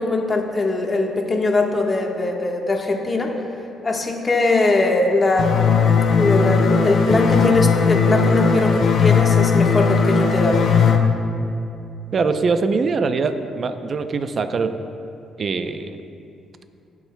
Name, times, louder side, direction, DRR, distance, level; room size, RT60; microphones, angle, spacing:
voice 1, 0.0-3.3 3.8-5.6 6.1-10.6, left 2 dB, 30° left, 1 dB, 1.4 m, -21 dB
sound 1, 5.4-11.0, left 5 dB, 60° left, 0.8 m, -17 dB
voice 2, 12.1-14.8 15.4-16.0, right 4 dB, 45° right, 9 dB, 0.6 m, -22 dB
19.5 x 7.2 x 2.3 m, 2.6 s
cardioid pair, 90°, 0 cm